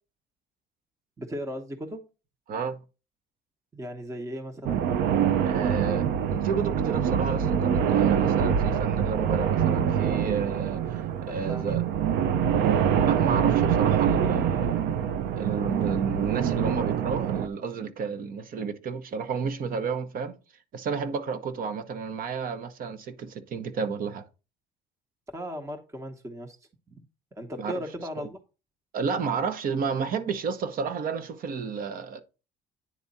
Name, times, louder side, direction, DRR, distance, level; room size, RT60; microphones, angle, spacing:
voice 1, 1.2-2.0 3.7-4.9 11.2-11.8 25.3-26.6 27.0-27.1 27.3-28.4, equal, 15° right, 0.9 m, -37 dB
voice 2, 2.5-2.8 5.4-6.0 6.3-11.0 11.3-11.8 13.0-14.8 15.4-20.4 20.7-24.3 27.6-27.7 28.9-32.2, right 5 dB, 55° right, 1.0 m, -31 dB
sound 1, 4.6-17.5, right 8 dB, 85° right, 0.7 m, -25 dB
9.5 x 3.6 x 4.1 m
cardioid pair, 110°, 17 cm